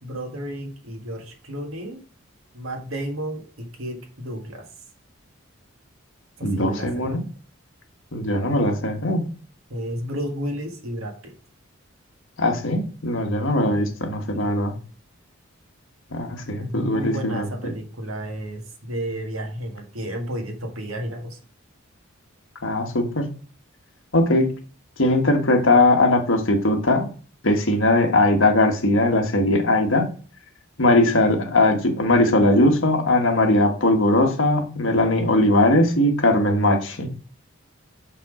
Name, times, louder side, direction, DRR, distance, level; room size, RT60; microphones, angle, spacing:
voice 1, 0.0-2.0 2.5-4.7 6.4-7.3 9.7-11.3 16.6-21.4, equal, 85° right, 3 dB, 1.8 m, -32 dB
voice 2, 6.4-7.2 8.1-9.2 12.4-14.7 16.1-17.7 22.6-23.3 24.1-24.5 25.0-27.1 27.4-30.1 30.8-37.1, left 1 dB, 70° left, 4 dB, 1.5 m, -20 dB
5.9 x 5.7 x 4.9 m, 0.39 s
head